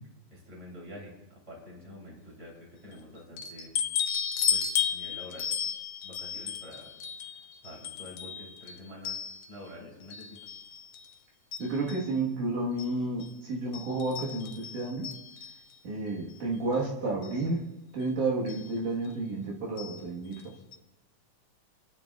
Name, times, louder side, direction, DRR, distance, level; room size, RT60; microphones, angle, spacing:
voice 1, 0.3-3.7 4.5-5.5 6.0-6.9 7.6-9.2 9.5-10.4, left 1 dB, 25° right, -2 dB, 3.4 m, -47 dB
sound 1, 3.4-9.7 10.1-11.1 11.5-12.1 12.8-12.9 13.2-13.3 13.7-15.7 16.7-16.8 17.2-17.3 18.5-18.7 19.8-20.0 20.3-20.4 20.7-20.8, left 8 dB, 75° left, 2.1 m, -34 dB
voice 2, 11.6-15.1 15.8-17.6 17.9-20.4, right 2 dB, 75° right, -3 dB, 2.9 m, -31 dB
29.5 x 10.0 x 2.4 m, 0.98 s
omnidirectional pair, 3.6 m